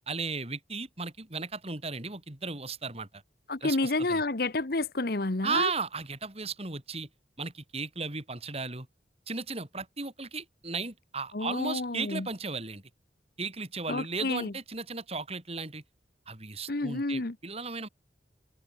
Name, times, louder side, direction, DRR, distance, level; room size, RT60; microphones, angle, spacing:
voice 1, 0.0-3.2 3.6-4.2 5.4-7.1 7.4-8.9 9.3-12.8 13.4-15.8 16.3-17.9, right 4 dB, 35° right, 3.4 m, -35 dB
voice 2, 3.5-5.7 11.3-12.3 13.9-14.5 16.7-17.3, left 2 dB, 60° left, 1.2 m, -30 dB
head